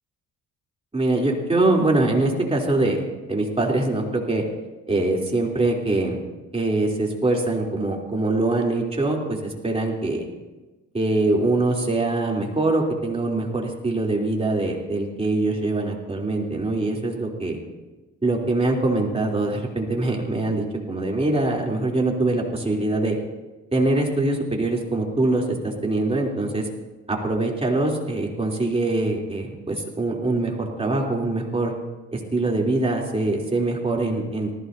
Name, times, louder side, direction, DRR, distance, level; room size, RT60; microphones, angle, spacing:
voice 1, 0.9-3.0 3.3-4.4 4.9-6.2 6.5-10.2 10.9-17.6 18.2-23.2 23.7-26.7 27.1-31.7 32.1-34.6, right 2 dB, 20° right, -1 dB, 3.3 m, -23 dB
19.0 x 15.5 x 2.7 m, 1.1 s
cardioid pair, 90°, 30 cm